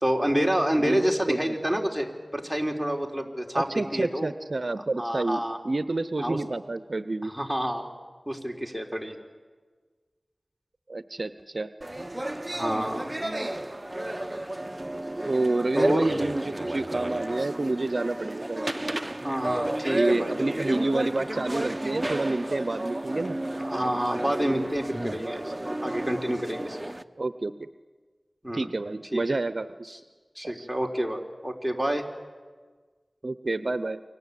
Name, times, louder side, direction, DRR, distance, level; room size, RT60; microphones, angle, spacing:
voice 1, 0.0-3.7 3.9-4.3 5.0-5.6 6.2-6.4 7.2-7.9 8.3-9.2 12.5-13.1 15.7-16.2 18.6-18.8 19.1-20.7 23.6-25.5 25.8-26.8 28.4-28.7 29.1-29.2 29.9-30.0 30.4-32.0, equal, ahead, 1 dB, 3.8 m, -28 dB
voice 2, 0.8-1.5 3.6-7.3 10.9-11.7 15.2-18.7 19.9-23.4 27.2-27.7 28.5-29.7 30.4-30.7 33.2-34.0, right 2 dB, 65° right, 12 dB, 0.8 m, -29 dB
sound 1, 11.8-27.0, right 1 dB, 25° right, 0.9 m, -32 dB
29.0 x 24.0 x 8.3 m, 1.5 s
wide cardioid pair, 45°, 0 cm